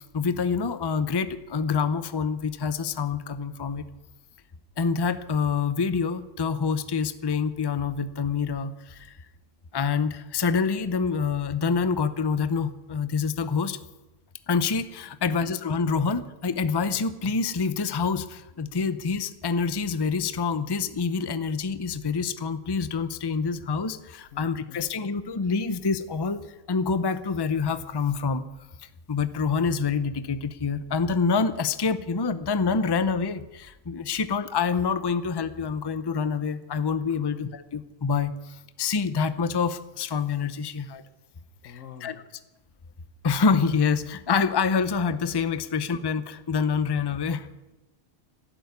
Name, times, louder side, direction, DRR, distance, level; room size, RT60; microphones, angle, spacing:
voice 1, 0.0-3.8 4.8-8.7 9.7-13.8 14.5-26.4 26.7-28.4 29.1-38.3 38.8-41.0 42.0-42.2 43.2-47.4, left 5 dB, 25° left, 12 dB, 0.6 m, -26 dB
voice 2, 24.3-24.9 37.1-37.4 41.6-42.3, left 8 dB, 80° left, 11 dB, 1.5 m, -46 dB
12.5 x 11.5 x 9.6 m, 1.0 s
omnidirectional pair, 1.3 m